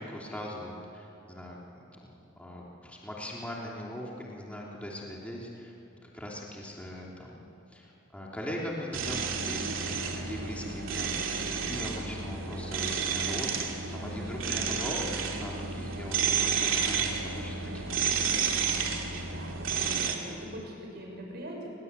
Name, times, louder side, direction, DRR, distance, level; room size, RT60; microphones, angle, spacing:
voice 1, 0.0-5.7 6.0-7.4 7.7-13.5 13.9-16.2 16.5-18.1, left 1 dB, 5° left, -4 dB, 3.1 m, -40 dB
sound 1, 8.9-20.2, right 6 dB, 75° right, 2.8 m, -31 dB
voice 2, 19.3-21.7, right 1 dB, 55° right, 0 dB, 6.6 m, -42 dB
28.5 x 21.5 x 8.3 m, 2.8 s
head